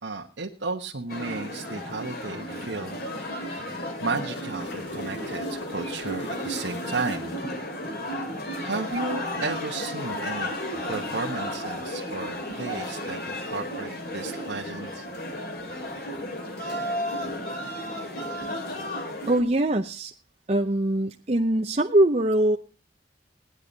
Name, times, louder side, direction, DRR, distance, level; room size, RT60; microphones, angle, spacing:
voice 1, 0.0-3.0 3.3-3.6 4.0-7.3 8.6-10.5 10.9-15.0, right 3 dB, 85° right, 0 dB, 1.3 m, -33 dB
sound 1, 1.1-19.4, left 1 dB, 55° left, 2.7 m, -33 dB
sound 2, 4.0-7.6 11.4-11.6, left 1 dB, 80° left, 2.0 m, -40 dB
voice 2, 19.3-20.1 20.5-22.6, right 1 dB, 35° right, 2 dB, 0.7 m, -22 dB
18.0 x 10.5 x 4.0 m, 0.34 s
head